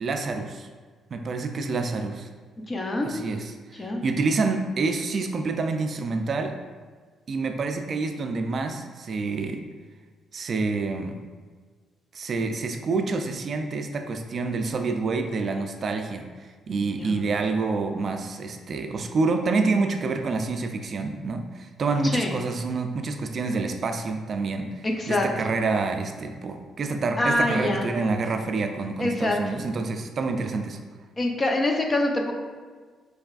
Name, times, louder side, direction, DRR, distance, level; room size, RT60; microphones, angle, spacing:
voice 1, 0.0-0.7 1.1-2.3 3.0-6.6 7.3-9.6 10.3-11.2 12.1-30.8, right 3 dB, 50° right, 6 dB, 0.3 m, -27 dB
voice 2, 2.7-3.1 3.8-4.0 17.0-17.3 22.0-22.3 24.8-25.5 27.2-27.9 29.0-29.4 31.2-32.3, left 1 dB, 30° left, 2 dB, 0.6 m, -25 dB
4.6 x 3.3 x 2.4 m, 1.5 s
cardioid pair, 90°, 0 cm